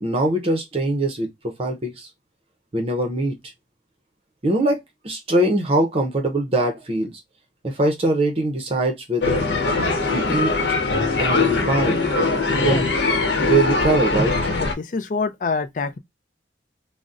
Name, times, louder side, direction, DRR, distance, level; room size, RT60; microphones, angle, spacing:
voice 1, 0.0-2.1 2.7-3.4 4.4-7.1 7.6-9.5 10.1-10.6 11.2-12.0 12.5-12.9 13.4-14.4, right 2 dB, 35° right, 0.6 m, -22 dB
sound 1, 9.2-14.7, left 3 dB, 80° left, 0.8 m, -21 dB
voice 2, 12.5-12.8 14.5-16.0, left 4 dB, 45° left, 0.4 m, -26 dB
3.9 x 2.0 x 2.4 m
head